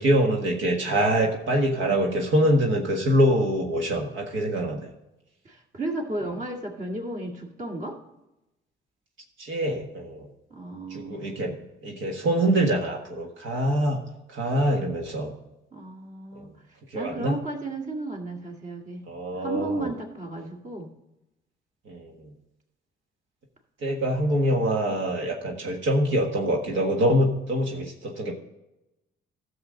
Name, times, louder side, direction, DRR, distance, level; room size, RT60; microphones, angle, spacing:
voice 1, 0.0-4.9 9.4-10.3 10.9-11.5 11.8-14.0 14.3-15.3 16.3-16.5 16.9-17.3 19.1-19.9 21.8-22.3 23.8-28.3, equal, 75° right, 1 dB, 1.6 m, -24 dB
voice 2, 5.4-8.0 10.5-11.5 15.7-16.5 16.9-19.1 19.4-20.9, right 2 dB, 40° right, 1 dB, 2.2 m, -34 dB
12.5 x 7.2 x 3.9 m, 0.94 s
cardioid pair, 90°, 20 cm